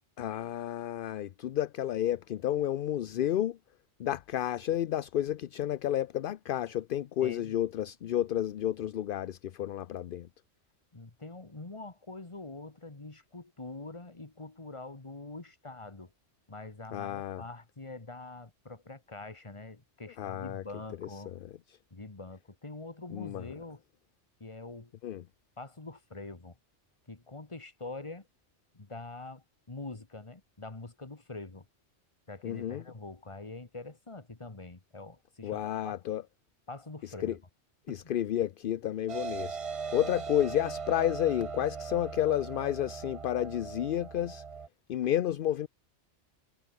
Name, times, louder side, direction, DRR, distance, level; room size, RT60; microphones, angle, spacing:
voice 1, 0.2-3.6 4.0-10.3 16.9-17.4 20.2-20.6 21.4-21.5 23.1-23.4 25.0-25.2 32.4-32.8 35.4-36.2 37.0-37.4 37.9-39.6 39.9-44.4 44.9-45.7, left 11 dB, 60° left, 0.6 m, -31 dB
voice 2, 7.2-7.6 10.9-16.1 16.5-21.3 21.9-23.8 24.4-24.9 25.6-26.6 27.1-28.3 28.7-31.7 32.3-36.0 36.7-37.4 37.9-38.0, left 3 dB, 25° left, 1.8 m, -44 dB
sound 1, 39.1-44.7, right 5 dB, 35° right, 0.7 m, -39 dB
omnidirectional pair, 1.2 m